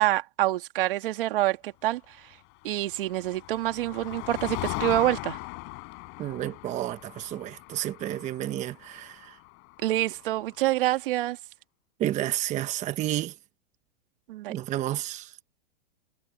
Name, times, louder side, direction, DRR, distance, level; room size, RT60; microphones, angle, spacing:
voice 1, 0.0-2.2 2.6-5.4 9.8-11.4 14.3-14.5, right 15 dB, 65° right, 2.1 m, -26 dB
Motor vehicle (road), 2.6-10.4, left 31 dB, 45° left, 5.6 m, -39 dB
voice 2, 6.2-9.4 12.0-13.3 14.5-15.4, right 13 dB, 25° right, 1.0 m, -31 dB
supercardioid pair, 145°, 29 cm